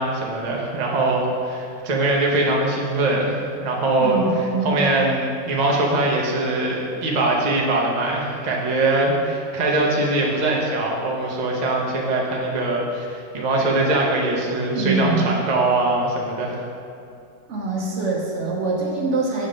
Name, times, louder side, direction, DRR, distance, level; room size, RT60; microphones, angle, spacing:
voice 1, 0.0-4.2 4.6-16.6, right 2 dB, 80° right, -2 dB, 0.4 m, -22 dB
voice 2, 4.0-4.8 14.7-15.3 17.5-19.5, right 3 dB, 60° right, -2 dB, 0.8 m, -24 dB
5.6 x 3.5 x 5.1 m, 2.6 s
omnidirectional pair, 2.0 m